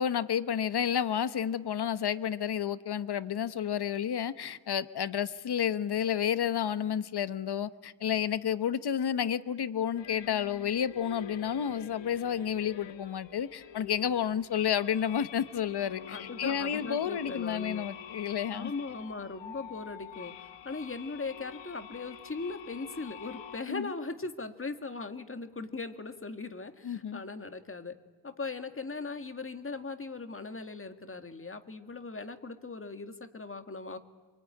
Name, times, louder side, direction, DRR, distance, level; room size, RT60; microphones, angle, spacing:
voice 1, 0.0-18.7 23.7-23.9 26.8-27.2, left 8 dB, 65° left, 15 dB, 1.1 m, -31 dB
sound 1, 10.0-23.6, left 7 dB, 90° left, 1.0 m, -47 dB
voice 2, 16.1-17.9 18.5-28.0 28.2-34.0, left 3 dB, 30° left, 9 dB, 1.8 m, -39 dB
24.0 x 23.5 x 9.8 m, 1.4 s
cardioid pair, 90°, 43 cm